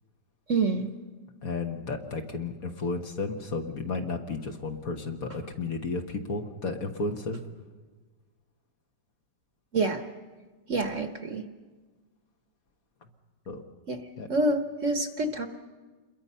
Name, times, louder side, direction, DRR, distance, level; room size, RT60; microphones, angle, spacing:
voice 1, 0.5-0.9 9.7-10.0 10.7-11.4 13.9-14.0 14.3-15.5, right 2 dB, 45° right, 7 dB, 1.3 m, -27 dB
voice 2, 1.4-7.4 13.5-13.6 14.2-14.3, left 3 dB, 50° left, 4 dB, 1.7 m, -33 dB
27.5 x 22.0 x 5.6 m, 1.3 s
omnidirectional pair, 2.0 m